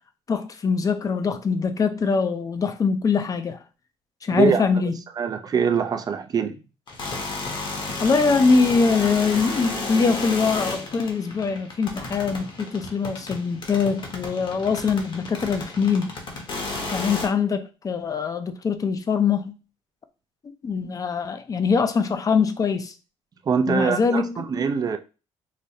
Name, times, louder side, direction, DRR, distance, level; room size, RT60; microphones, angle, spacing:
voice 1, 0.3-3.6 4.2-5.0 8.0-16.1 16.9-19.6 20.6-22.9 23.7-24.5, left 5 dB, 30° left, 0.5 m, -23 dB
voice 2, 4.3-4.6 5.2-6.6 23.5-25.0, right 6 dB, 35° right, 0.5 m, -23 dB
sound 1, 6.9-17.3, left 2 dB, 50° left, 1.0 m, -32 dB
4.9 x 2.1 x 2.7 m
cardioid pair, 95°, 11 cm